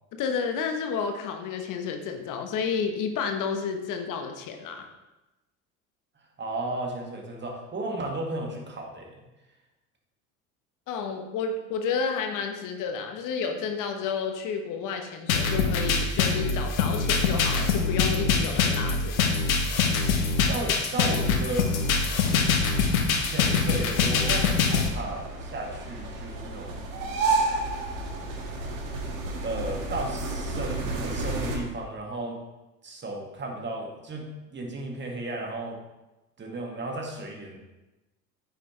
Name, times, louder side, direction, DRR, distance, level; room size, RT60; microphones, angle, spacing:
voice 1, 0.1-4.9 10.9-19.3, left 6 dB, 50° left, 5 dB, 1.1 m, -31 dB
voice 2, 6.4-9.1 20.5-21.7 23.2-26.8 29.4-32.4 32.8-35.8 36.4-37.6, right 2 dB, 25° right, 1 dB, 1.9 m, -34 dB
sound 1, 15.3-24.9, left 5 dB, 80° left, 1.1 m, -24 dB
sound 2, 21.2-31.6, right 3 dB, 70° right, 1.7 m, -32 dB
9.4 x 6.2 x 3.2 m, 1.0 s
hypercardioid pair, 75°, 41 cm